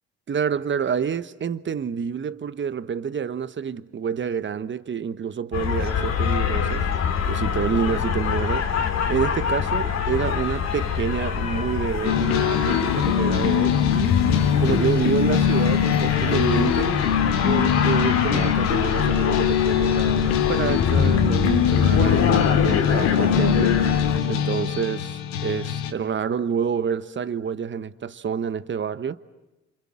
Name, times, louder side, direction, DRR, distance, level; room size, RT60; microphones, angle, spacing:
voice 1, 0.3-6.9 7.2-8.7 9.1-14.2 14.6-17.0 17.4-23.8 24.3-29.2, right 7 dB, 40° right, 1.2 m, -28 dB
sound 1, 5.5-24.2, left 7 dB, 60° left, 2.5 m, -25 dB
sound 2, 12.0-25.9, left 9 dB, 85° left, 1.5 m, -22 dB
28.5 x 26.5 x 7.6 m
hypercardioid pair, 55°, 31 cm